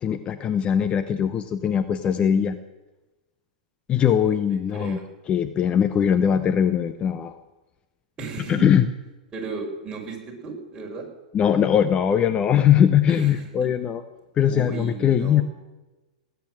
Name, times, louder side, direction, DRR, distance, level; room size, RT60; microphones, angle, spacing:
voice 1, 0.0-2.6 3.9-5.0 5.3-7.4 8.5-8.9 11.3-14.0 14.4-15.4, left 8 dB, 25° left, 10 dB, 0.8 m, -21 dB
voice 2, 4.0-5.0 8.2-8.7 9.3-11.1 13.1-13.7 14.4-15.4, right 4 dB, 20° right, 0 dB, 4.7 m, -36 dB
18.5 x 9.3 x 7.6 m, 1.1 s
hypercardioid pair, 110°, 4 cm